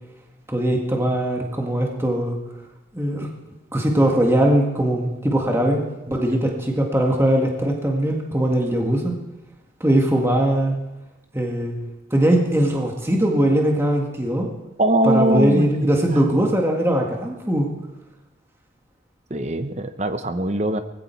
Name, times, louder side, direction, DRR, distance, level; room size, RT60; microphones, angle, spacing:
voice 1, 0.5-2.4 2.9-3.3 3.7-9.1 9.8-10.7 11.3-11.8 12.1-14.5 15.0-17.7, right 1 dB, 15° right, 1 dB, 1.8 m, -20 dB
voice 2, 14.8-16.4 19.3-20.8, right 1 dB, 35° right, 9 dB, 0.9 m, -22 dB
19.0 x 15.5 x 4.6 m, 1.0 s
head